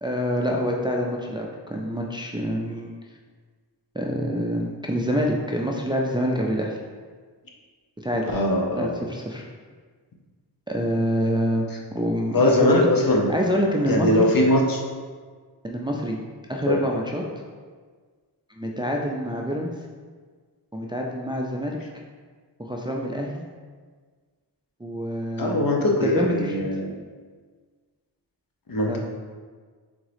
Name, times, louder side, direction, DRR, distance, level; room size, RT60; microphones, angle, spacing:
voice 1, 0.0-2.9 3.9-6.8 8.0-8.2 8.8-9.4 10.7-11.7 11.9-12.9 13.3-14.3 15.6-16.2 16.5-17.3 18.6-19.7 20.7-21.8 22.6-23.4 24.8-25.7 26.0-26.6 28.9-29.0, equal, 10° right, -1 dB, 0.4 m, -26 dB
voice 2, 8.3-8.9 12.3-13.3 13.9-14.8 16.7-16.8 25.4-26.9 28.7-29.0, left 1 dB, 55° left, 0 dB, 0.7 m, -21 dB
3.6 x 3.6 x 3.4 m, 1.5 s
wide cardioid pair, 65°, 42 cm